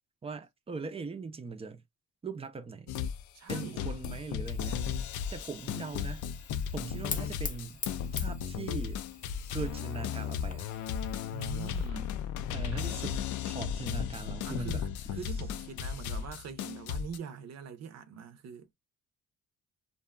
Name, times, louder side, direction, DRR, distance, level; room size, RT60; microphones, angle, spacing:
voice 1, 0.2-1.8 2.2-2.9 3.5-4.9 5.3-6.2 6.7-7.8 8.2-9.0 9.5-10.7 12.5-14.8 15.2-15.4, right 4 dB, 20° right, 0.5 m, -40 dB
sound 1, 2.9-3.2 3.5-17.2, left 8 dB, 75° left, 0.4 m, -35 dB
voice 2, 3.3-3.8 11.3-12.2 14.5-18.7, right 7 dB, 60° right, 0.6 m, -43 dB
Fire, 4.5-11.9, left 5 dB, 25° left, 0.6 m, -45 dB
2.6 x 2.2 x 2.3 m
cardioid pair, 90°, 30 cm